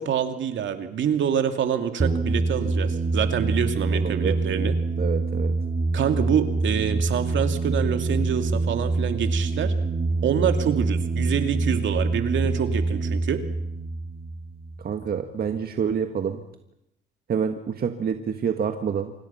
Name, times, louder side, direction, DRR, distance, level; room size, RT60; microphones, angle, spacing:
voice 1, 0.0-4.8 5.9-9.7 10.2-13.4, right 8 dB, 70° right, 7 dB, 2.6 m, -26 dB
sound 1, 2.0-15.2, right 3 dB, 30° right, 2.3 m, -25 dB
voice 2, 3.9-4.4 5.0-5.5 14.8-16.4 17.3-19.1, right 7 dB, 50° right, 6 dB, 1.6 m, -27 dB
28.5 x 25.5 x 5.8 m, 0.80 s
cardioid pair, 90°, 20 cm